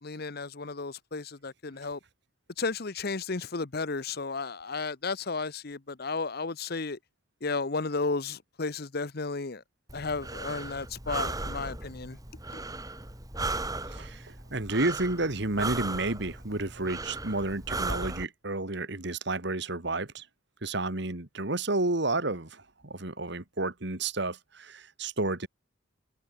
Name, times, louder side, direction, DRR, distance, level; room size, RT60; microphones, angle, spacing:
voice 1, 0.0-2.0 2.6-7.0 7.4-9.6 9.9-12.2 12.5-12.6, left 4 dB, 50° left, 0.9 m, -33 dB
Breathing, 9.9-18.2, right 2 dB, 20° right, 3.6 m, -36 dB
voice 2, 13.9-20.2 20.6-25.5, right 2 dB, 55° right, 2.1 m, -31 dB
head